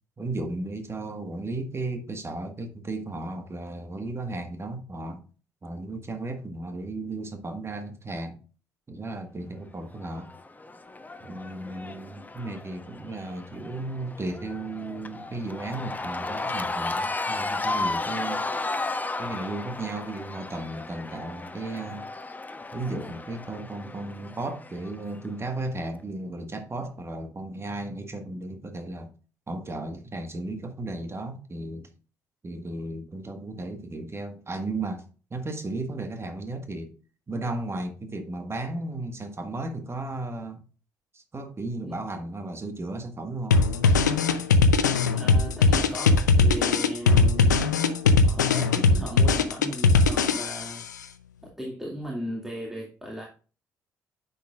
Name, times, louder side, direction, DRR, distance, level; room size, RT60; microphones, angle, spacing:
voice 1, 0.2-5.2 5.6-8.4 8.9-10.3 11.2-18.4 19.2-22.0 22.7-29.1 29.5-31.9 32.4-35.0 35.3-36.9 37.3-40.6 41.1-43.6, right 2 dB, 25° right, 1.6 m, -35 dB
Cheering / Crowd, 10.0-25.3, left 3 dB, 15° left, 1.0 m, -34 dB
sound 1, 43.5-50.8, left 4 dB, 80° left, 0.6 m, -20 dB
voice 2, 45.1-50.8 51.4-53.3, equal, 5° right, 2.4 m, -37 dB
10.0 x 7.0 x 2.5 m
figure-of-eight pair, 45°, 10 cm